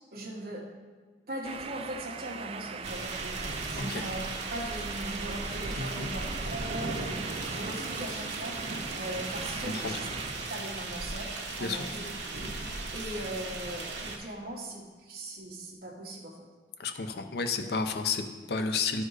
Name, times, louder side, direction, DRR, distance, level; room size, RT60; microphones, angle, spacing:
voice 1, 0.1-0.7 1.3-4.2 4.5-6.2 6.5-8.6 8.9-10.1 10.5-12.0 12.9-16.5, right 1 dB, 55° right, -1 dB, 1.4 m, -39 dB
sound 1, 1.4-10.5, right 6 dB, 35° right, 0.3 m, -41 dB
sound 2, 2.8-14.2, right 2 dB, 85° right, 1.2 m, -37 dB
voice 2, 5.8-6.1 9.7-10.0 11.6-11.8 16.8-19.0, left 4 dB, 65° left, 6 dB, 0.6 m, -32 dB
12.0 x 4.4 x 4.8 m, 1.4 s
head